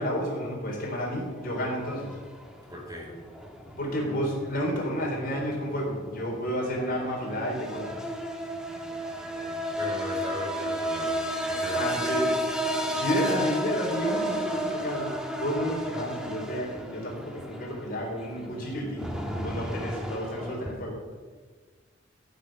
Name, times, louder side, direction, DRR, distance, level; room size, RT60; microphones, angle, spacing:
voice 1, 0.0-2.1 3.8-7.9 11.7-15.1 15.4-19.1 19.4-21.0, equal, 50° left, -1 dB, 4.0 m, -31 dB
sound 1, 0.9-20.7, equal, 5° right, 1.4 m, -33 dB
voice 2, 2.7-3.1 9.8-11.1 11.5-12.0, left 1 dB, 20° right, -2 dB, 4.5 m, -37 dB
14.5 x 6.8 x 8.9 m, 1.5 s
head